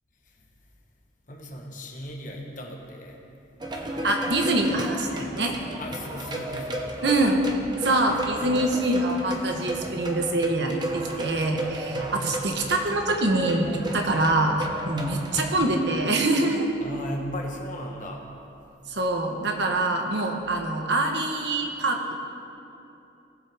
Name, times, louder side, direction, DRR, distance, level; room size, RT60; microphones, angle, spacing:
voice 1, 1.3-3.2 5.8-7.1 11.9-12.2 16.8-18.3, equal, 40° left, 0 dB, 1.2 m, -37 dB
sound 1, 3.6-15.7, right 2 dB, 20° right, 0.8 m, -34 dB
voice 2, 4.0-5.5 7.0-7.4 7.8-16.7 18.9-22.1, right 2 dB, 60° right, 3 dB, 1.2 m, -25 dB
18.5 x 7.6 x 3.5 m, 2.8 s
head